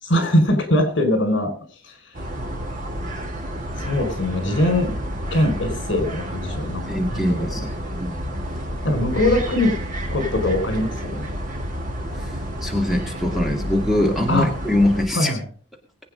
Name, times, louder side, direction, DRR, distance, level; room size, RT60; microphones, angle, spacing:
voice 1, 0.0-1.5 1.8-1.9 3.8-4.9 5.3-6.8 7.1-7.6 8.8-9.8 10.1-11.3 14.3-14.5 15.1-15.4, left 1 dB, 60° left, 7 dB, 5.4 m, -21 dB
sound 1, 2.1-15.1, equal, 40° right, 3.5 m, -30 dB
voice 2, 6.9-7.7 8.0-8.4 12.2-15.3, left 1 dB, ahead, 1 dB, 2.2 m, -23 dB
22.0 x 8.8 x 3.9 m, 0.40 s
head